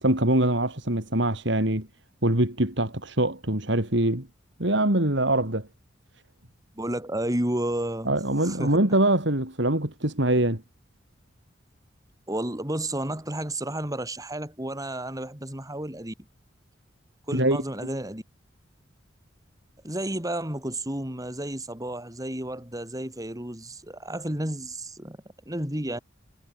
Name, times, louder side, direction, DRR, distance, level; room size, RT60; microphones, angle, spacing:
voice 1, 0.0-1.9 2.2-4.3 4.6-5.7 8.1-10.6 17.3-17.6, right 1 dB, 65° right, 4.1 m, -23 dB
voice 2, 6.7-8.1 8.4-8.8 12.3-16.1 17.3-18.2 19.8-25.2 25.5-26.0, right 1 dB, 20° right, 5.0 m, -31 dB
head